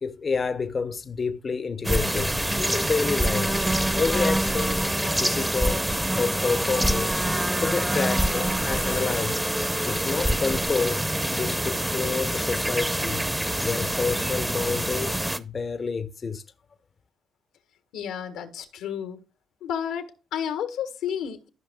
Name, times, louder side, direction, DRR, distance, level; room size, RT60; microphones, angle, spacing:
voice 1, 0.0-3.5 4.0-4.9 5.2-7.2 7.6-9.4 9.9-11.0 11.3-13.2 13.6-16.4, left 4 dB, 35° left, 0.7 m, -29 dB
sound 1, 1.8-15.4, right 1 dB, 10° right, 0.7 m, -25 dB
voice 2, 17.9-19.2 19.6-21.5, left 8 dB, 90° left, 1.4 m, -31 dB
14.0 x 5.6 x 2.2 m
cardioid pair, 90°, 0 cm